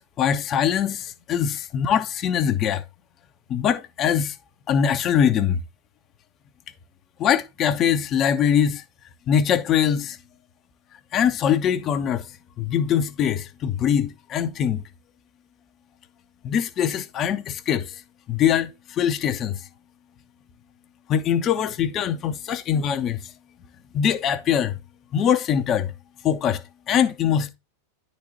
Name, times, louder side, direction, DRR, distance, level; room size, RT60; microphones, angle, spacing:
voice 1, 0.0-2.8 3.5-4.4 4.7-5.6 7.2-8.8 9.3-10.2 11.1-12.3 12.6-14.8 16.4-18.0 18.3-19.7 21.1-23.3 23.9-24.8 25.1-25.9 26.2-27.5, left 8 dB, 30° left, 0.7 m, -22 dB
10.5 x 4.1 x 2.8 m
figure-of-eight pair, 90°, 0 cm